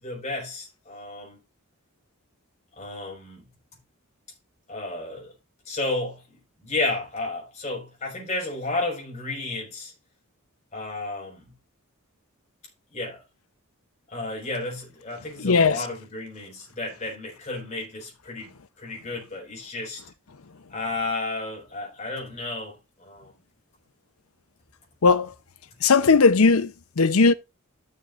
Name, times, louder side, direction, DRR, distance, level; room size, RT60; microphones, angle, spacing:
voice 1, 0.0-1.4 2.8-3.5 4.7-5.3 5.7-9.9 10.7-11.5 12.9-13.2 14.1-18.5 18.8-20.0 20.7-23.3, left 2 dB, 30° left, 4.2 m, -32 dB
voice 2, 15.4-15.8 25.0-25.3 25.8-27.3, left 4 dB, 80° left, 0.7 m, -18 dB
13.5 x 6.5 x 2.5 m
head